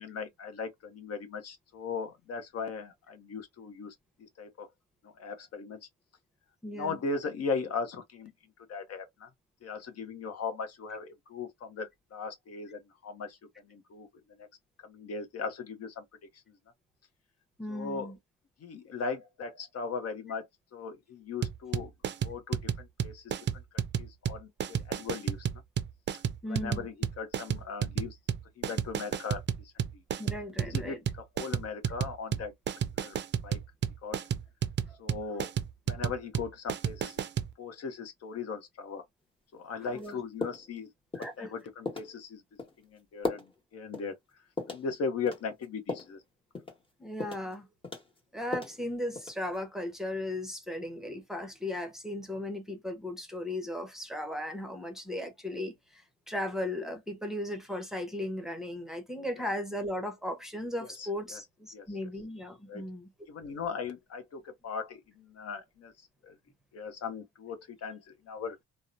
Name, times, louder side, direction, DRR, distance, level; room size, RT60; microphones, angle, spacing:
voice 1, 0.0-4.7 5.0-5.8 6.7-8.3 8.7-9.3 9.6-13.4 13.7-14.1 14.4-14.5 14.8-16.0 17.7-18.1 18.6-20.5 20.7-21.9 22.2-23.2 23.7-25.5 26.5-28.2 28.6-29.4 30.6-32.5 33.0-33.2 33.4-33.6 34.0-34.2 35.0-35.5 35.9-37.2 37.6-39.0 39.5-40.9 41.4-42.4 42.9-44.2 44.7-46.2 60.8-61.4 61.7-61.9 62.7-62.8 63.3-65.9 66.2-66.3 66.7-68.0 68.3-68.6, left 5 dB, 55° left, 0.7 m, -38 dB
voice 2, 6.6-7.0 17.6-18.2 26.4-26.9 30.2-31.0 35.3-35.4 39.8-40.2 41.1-41.5 47.0-47.7 48.3-63.1, left 1 dB, ahead, 0.8 m, -36 dB
sound 1, 21.4-37.5, right 8 dB, 40° right, 0.4 m, -32 dB
sound 2, 40.0-40.1 40.4-40.8 41.1-41.4 41.8-42.1 42.6-42.7 43.2-43.5 43.9-44.1 44.6-44.9 45.3-46.1 46.5-46.8 47.2-47.5 47.8-48.8 49.1-49.6, left 3 dB, 15° left, 1.1 m, -36 dB
2.8 x 2.1 x 2.4 m
cardioid pair, 85°, 30 cm